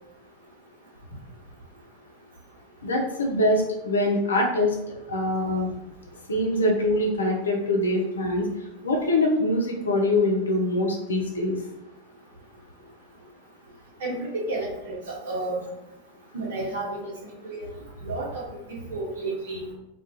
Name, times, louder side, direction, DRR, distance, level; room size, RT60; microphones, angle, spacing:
voice 1, 2.8-5.7 6.3-8.5 8.8-11.6, left 1 dB, 70° left, 0 dB, 0.5 m, -24 dB
voice 2, 14.0-15.6 16.3-17.7 18.0-19.7, right 2 dB, 60° right, -4 dB, 0.9 m, -32 dB
2.3 x 2.3 x 2.7 m, 0.89 s
figure-of-eight pair, 90°, 0 cm